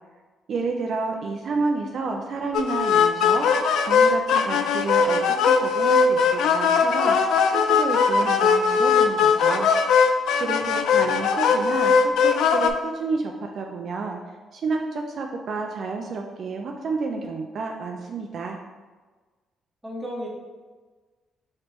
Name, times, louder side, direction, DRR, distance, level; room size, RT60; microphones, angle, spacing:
voice 1, 0.5-3.5 3.8-5.2 5.5-9.7 10.4-14.2 14.5-18.6, right 4 dB, 60° right, 2 dB, 0.4 m, -30 dB
sound 1, 2.5-12.7, left 6 dB, 80° left, 0.3 m, -20 dB
voice 2, 19.8-20.3, equal, 10° right, -3 dB, 1.1 m, -34 dB
5.0 x 3.2 x 2.9 m, 1.3 s
cardioid pair, 90°, 0 cm